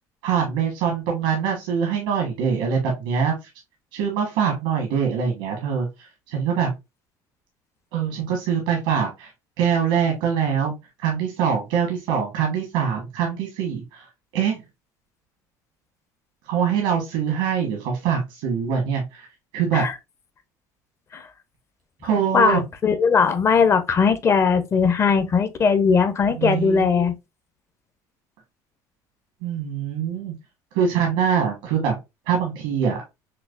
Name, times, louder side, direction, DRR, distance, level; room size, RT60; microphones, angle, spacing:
voice 1, 0.2-3.3 3.9-6.7 7.9-9.3 9.6-10.7 11.0-14.1 14.3-14.5 16.5-19.3 19.5-19.8 22.0-22.6 26.4-27.1 29.4-30.3 30.7-31.9 32.3-33.0, right 7 dB, 90° right, 1.2 m, -23 dB
voice 2, 22.1-27.1, left 5 dB, 35° left, 0.6 m, -19 dB
5.8 x 2.0 x 2.4 m
cardioid pair, 115°, 8 cm